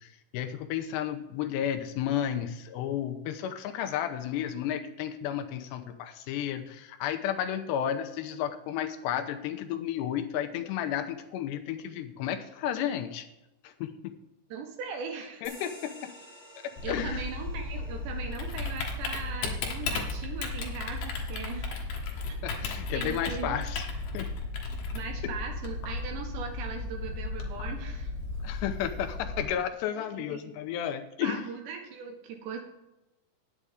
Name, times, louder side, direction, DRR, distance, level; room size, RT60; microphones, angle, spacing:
voice 1, 0.0-13.3 13.6-14.1 15.4-16.1 16.6-17.2 22.4-23.9 24.1-24.3 28.4-31.5, left 10 dB, 85° left, 7 dB, 2.9 m, -32 dB
voice 2, 14.5-15.4 16.8-21.8 22.9-23.6 24.9-28.1 30.3-30.5 31.2-32.6, right 6 dB, 80° right, 3 dB, 3.8 m, -39 dB
sound 1, 15.4-22.5, right 1 dB, 35° right, 1.2 m, -54 dB
Typing, 16.8-29.4, left 3 dB, 65° left, 3.2 m, -35 dB
10.0 x 8.1 x 5.1 m, 0.98 s
omnidirectional pair, 5.0 m